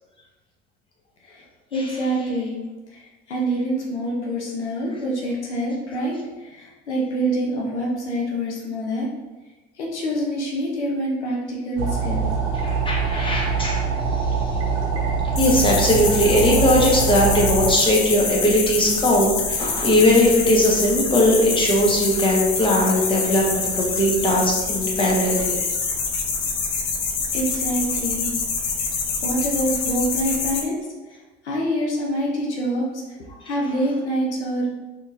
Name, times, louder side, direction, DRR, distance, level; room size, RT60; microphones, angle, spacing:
voice 1, 1.7-2.6 2.9-9.1 9.8-12.3 27.3-28.3 29.2-30.8 31.1-31.2 31.4-33.0 33.4-34.7, right 1 dB, 90° left, -3 dB, 0.7 m, -26 dB
sound 1, 11.8-17.7, right 5 dB, 45° right, 1.0 m, -23 dB
voice 2, 12.6-13.8 15.4-25.6 33.5-33.6, left 1 dB, 15° left, -3 dB, 1.2 m, -19 dB
sound 2, 15.4-30.6, left 4 dB, 50° left, 0.8 m, -26 dB
4.2 x 3.1 x 2.6 m, 1.2 s
hypercardioid pair, 65°, 33 cm